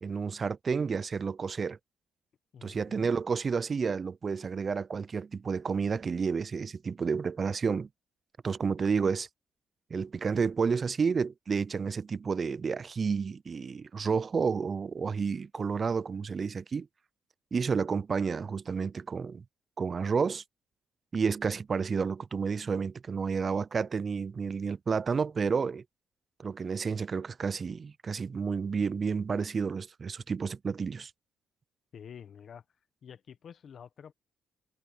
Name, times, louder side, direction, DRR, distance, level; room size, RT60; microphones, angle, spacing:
voice 1, 0.0-1.8 2.6-7.9 8.4-9.3 9.9-16.9 17.5-19.4 19.8-20.4 21.1-25.8 26.4-31.1, right 5 dB, 40° right, 0.3 m, -30 dB
voice 2, 2.5-3.1 31.9-32.6 33.0-34.1, left 8 dB, 55° left, 1.1 m, -48 dB
cardioid pair, 90°, 0 cm